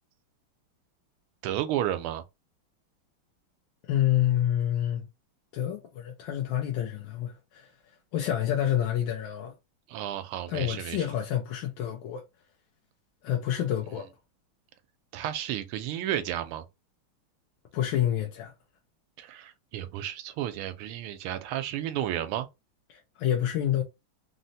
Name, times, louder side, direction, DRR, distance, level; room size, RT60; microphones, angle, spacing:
voice 1, 1.4-2.2 9.9-11.0 15.1-16.6 19.2-22.5, right 12 dB, 80° right, 1.4 m, -32 dB
voice 2, 3.8-5.1 5.5-7.7 8.1-9.5 10.5-12.2 13.2-14.1 17.7-18.5 22.9-23.8, left 11 dB, 75° left, 1.2 m, -28 dB
3.9 x 2.1 x 2.6 m
omnidirectional pair, 2.4 m